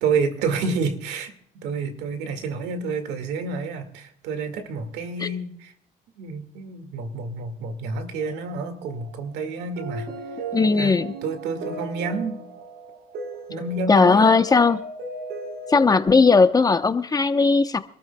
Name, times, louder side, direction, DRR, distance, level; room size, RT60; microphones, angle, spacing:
voice 1, 0.0-5.7 6.2-10.1 10.8-12.5 13.5-14.4, right 4 dB, 90° right, 8 dB, 2.0 m, -29 dB
sound 1, 8.1-16.3, right 2 dB, 70° right, 5.0 m, -37 dB
voice 2, 10.5-11.1 13.9-14.8 15.7-17.8, left 4 dB, 20° left, 10 dB, 0.9 m, -17 dB
26.0 x 13.5 x 2.3 m, 0.65 s
cardioid pair, 110°, 17 cm